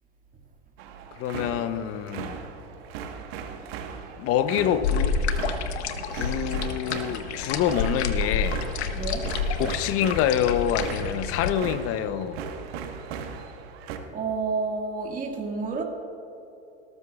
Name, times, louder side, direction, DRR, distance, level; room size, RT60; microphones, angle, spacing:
sound 1, 0.8-14.0, right 6 dB, 65° right, 1.5 m, -38 dB
voice 1, 1.2-2.4 4.2-5.2 6.1-8.6 9.6-12.5, left 9 dB, 45° left, 0.8 m, -26 dB
sound 2, 4.8-11.5, left 5 dB, 80° left, 1.0 m, -29 dB
voice 2, 8.9-9.3 14.1-15.8, right 4 dB, 25° right, 1.9 m, -29 dB
18.5 x 13.0 x 2.4 m
hypercardioid pair, 100°, 32 cm